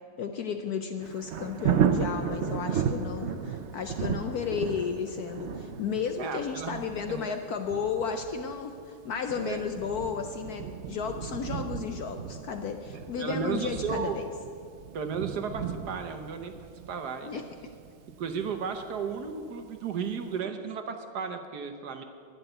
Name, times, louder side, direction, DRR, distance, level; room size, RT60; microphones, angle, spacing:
voice 1, 0.2-14.3 17.2-17.4, left 6 dB, 65° left, 6 dB, 1.0 m, -33 dB
Thunder, 1.0-19.8 20.2-20.3, right 7 dB, 85° right, 0.6 m, -34 dB
voice 2, 6.2-6.8 7.1-7.3 9.4-9.7 12.9-14.2 14.9-16.5 16.9-17.4 18.2-22.0, right 6 dB, 60° right, 6 dB, 1.3 m, -34 dB
11.5 x 10.5 x 7.9 m, 2.2 s
omnidirectional pair, 2.2 m